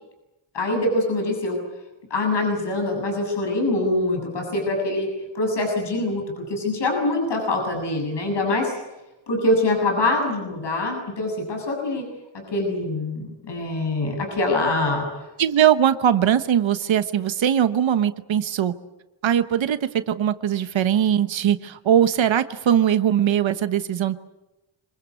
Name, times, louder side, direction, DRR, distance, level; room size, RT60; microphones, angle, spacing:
voice 1, 0.5-1.6 2.1-5.1 5.3-8.7 9.3-12.0 12.5-15.1, left 2 dB, 65° left, 2 dB, 7.3 m, -24 dB
voice 2, 15.4-18.7 19.2-24.2, right 9 dB, 80° right, 11 dB, 1.2 m, -20 dB
26.5 x 21.5 x 8.4 m, 1.0 s
wide cardioid pair, 130°, 46 cm